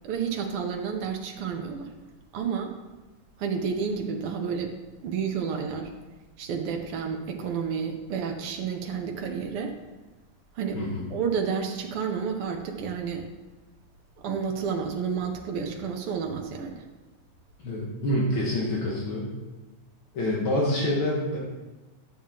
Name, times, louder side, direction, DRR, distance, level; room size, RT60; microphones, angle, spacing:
voice 1, 0.0-1.9 2.3-2.7 3.4-4.8 5.0-5.9 6.4-9.8 10.6-10.8 11.1-13.3 14.2-16.8, right 6 dB, 90° right, 2 dB, 1.8 m, -30 dB
voice 2, 10.7-11.1 17.6-19.3 20.1-21.4, left 1 dB, 70° left, -4 dB, 2.2 m, -27 dB
11.5 x 7.2 x 3.7 m, 1.2 s
omnidirectional pair, 2.4 m